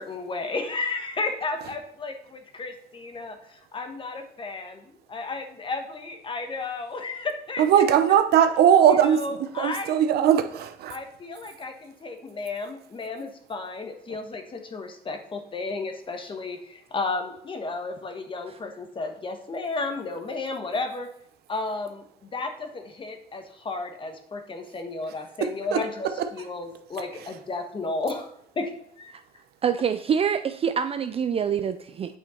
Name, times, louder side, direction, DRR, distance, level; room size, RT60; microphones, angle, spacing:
voice 1, 0.0-7.6 9.1-9.9 10.9-21.1 21.5-28.3 28.5-29.1, left 3 dB, 30° left, 1.3 m, -33 dB
voice 2, 7.6-11.0 25.4-25.8 26.2-26.3, right 9 dB, 70° right, 0.8 m, -20 dB
voice 3, 29.6-32.2, right 7 dB, 35° right, 0.4 m, -26 dB
8.6 x 6.2 x 4.4 m
cardioid pair, 110°, 17 cm